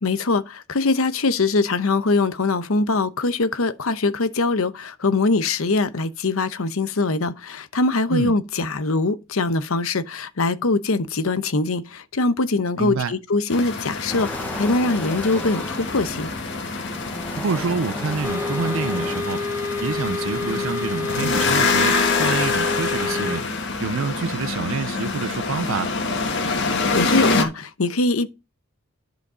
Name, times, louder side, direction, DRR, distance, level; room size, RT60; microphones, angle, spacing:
voice 1, 0.0-14.3 14.5-16.3 26.9-28.3, left 3 dB, 80° left, 0.9 m, -22 dB
voice 2, 12.8-13.1 17.4-19.4 19.8-23.5 23.8-25.9, right 5 dB, 70° right, 0.5 m, -27 dB
sound 1, 13.5-27.4, left 3 dB, 60° left, 1.7 m, -25 dB
sound 2, 14.1-19.2, left 1 dB, 10° left, 0.8 m, -34 dB
sound 3, 18.2-23.4, left 3 dB, 15° right, 2.0 m, -28 dB
11.0 x 5.1 x 5.0 m
head